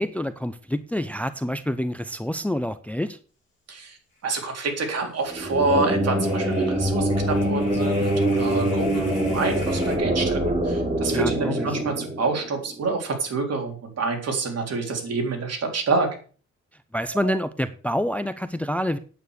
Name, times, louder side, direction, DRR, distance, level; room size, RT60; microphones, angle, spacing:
voice 1, 0.0-3.2 11.1-11.7 16.9-19.0, equal, 5° left, 13 dB, 0.6 m, -27 dB
sound 1, 4.2-4.3 4.6-4.7 6.1-10.0, left 2 dB, 25° left, 5.4 m, -43 dB
voice 2, 4.2-16.1 17.1-17.3, right 3 dB, 60° right, 3 dB, 3.7 m, -27 dB
sound 2, 5.3-12.9, right 1 dB, 20° right, 3.1 m, -24 dB
9.2 x 8.7 x 6.5 m, 0.40 s
cardioid pair, 130°, 29 cm